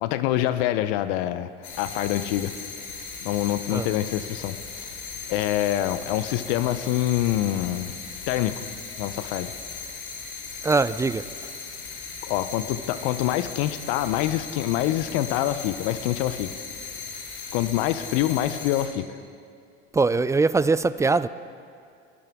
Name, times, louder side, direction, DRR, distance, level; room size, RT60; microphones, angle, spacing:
voice 1, 0.0-1.5 1.8-2.5 3.2-4.6 5.3-7.9 8.3-8.7 9.0-9.5 12.2-16.6 17.5-19.1, left 13 dB, 65° left, 12 dB, 0.8 m, -25 dB
sound 1, 1.6-18.9, left 5 dB, 85° left, 3.2 m, -38 dB
voice 2, 10.6-11.2 19.9-21.3, right 3 dB, 10° right, 16 dB, 0.3 m, -21 dB
23.0 x 14.5 x 3.6 m, 2.3 s
hypercardioid pair, 80°, 32 cm